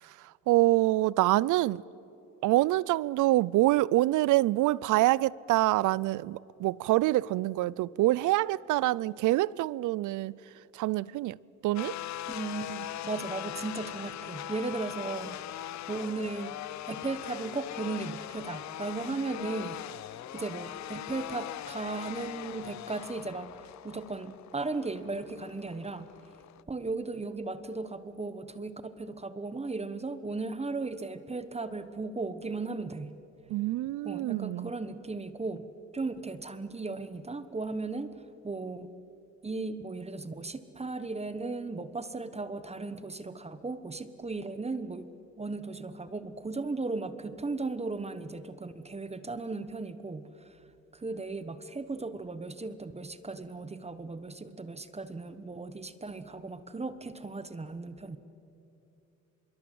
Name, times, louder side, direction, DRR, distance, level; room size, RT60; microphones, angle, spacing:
voice 1, 0.0-1.8 2.4-10.4 10.7-12.0 33.5-34.7, right 17 dB, 80° right, 0.5 m, -26 dB
sound 1, 11.7-26.6, left 13 dB, 65° left, 0.6 m, -41 dB
voice 2, 12.3-16.6 16.9-20.1 20.3-26.1 26.7-33.1 34.0-35.6 35.9-38.1 38.4-38.9 39.4-45.1 45.4-50.6 50.9-58.2, right 3 dB, 20° right, 1.2 m, -36 dB
25.5 x 22.5 x 7.8 m
cardioid pair, 90°, 30 cm